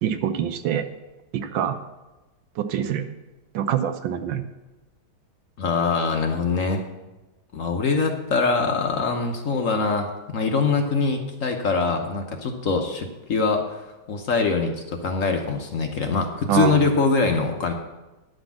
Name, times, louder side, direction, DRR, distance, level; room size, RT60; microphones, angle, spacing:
voice 1, 0.0-0.9 1.3-1.8 2.6-3.1 3.5-4.5 16.5-16.8, right 9 dB, 75° right, 9 dB, 1.3 m, -24 dB
voice 2, 5.6-6.8 7.5-17.7, left 4 dB, 50° left, 4 dB, 1.0 m, -23 dB
10.5 x 5.9 x 7.2 m, 1.1 s
omnidirectional pair, 2.2 m